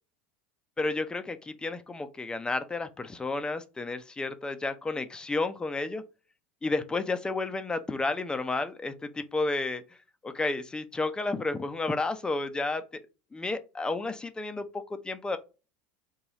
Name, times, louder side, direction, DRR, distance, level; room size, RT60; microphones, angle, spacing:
voice 1, 0.8-6.0 6.6-9.8 10.2-12.8 13.3-15.4, left 3 dB, 15° left, 0.5 m, -31 dB
4.0 x 2.3 x 2.9 m
hypercardioid pair, 85°, 6 cm